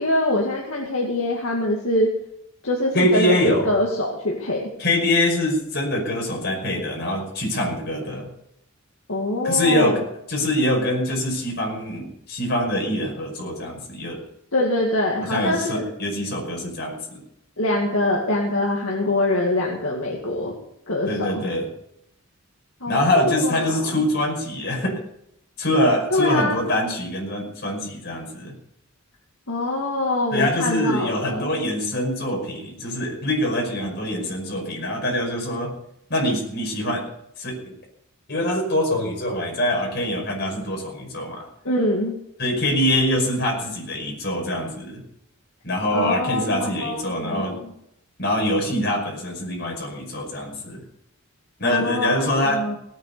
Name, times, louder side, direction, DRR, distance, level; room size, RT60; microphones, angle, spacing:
voice 1, 0.0-2.1 2.6-3.4 3.6-4.7 9.1-9.9 14.5-15.8 17.6-20.6 20.9-21.4 22.8-24.1 26.1-26.6 29.5-31.6 41.6-42.1 45.9-47.7 51.6-52.1 52.5-52.8, left 1 dB, 70° left, -2 dB, 2.2 m, -24 dB
voice 2, 2.9-3.7 4.8-8.3 9.4-14.2 15.2-17.2 21.1-21.7 22.9-25.0 25.6-28.5 30.3-35.7 36.1-37.1 37.4-37.7 38.3-41.5 42.4-45.0 45.6-47.6 48.2-50.8 51.6-52.6, left 1 dB, 50° left, 0 dB, 5.4 m, -24 dB
17.5 x 9.2 x 6.8 m, 0.76 s
head